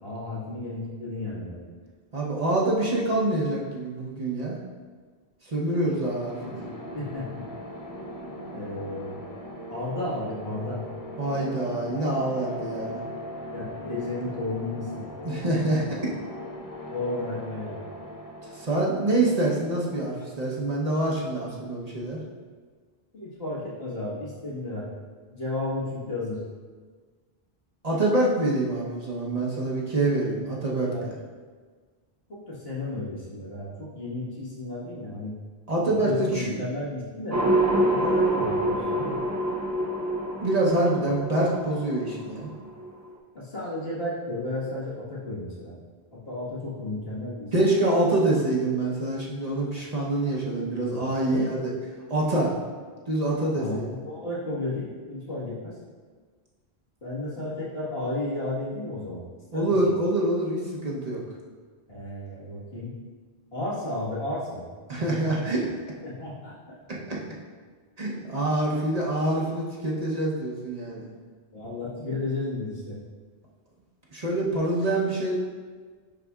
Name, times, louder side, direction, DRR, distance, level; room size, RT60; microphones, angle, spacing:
voice 1, 0.0-1.7 6.9-7.4 8.5-9.2 9.7-10.8 13.5-15.1 16.9-18.0 23.1-24.9 25.3-26.4 30.8-31.1 32.3-35.3 35.9-37.4 37.9-39.2 43.3-45.8 46.1-47.7 51.2-51.5 53.5-55.7 57.0-59.3 59.5-59.7 61.9-63.0 63.5-64.7 66.0-66.5 71.5-73.0, left 2 dB, 70° left, -7 dB, 1.8 m, -33 dB
voice 2, 2.1-4.6 5.4-6.6 11.2-13.0 15.2-16.0 18.5-22.2 27.8-31.1 35.7-36.5 40.4-42.5 47.5-51.7 52.1-52.5 53.1-53.9 59.5-61.2 64.9-65.7 66.9-67.2 68.0-71.1 74.1-75.3, right 2 dB, 40° right, -4 dB, 1.0 m, -26 dB
sound 1, 5.9-20.6, left 1 dB, 25° left, 0.5 m, -40 dB
sound 2, 37.3-43.1, right 1 dB, 25° right, 0.4 m, -26 dB
9.8 x 4.1 x 2.4 m, 1.5 s
omnidirectional pair, 1.0 m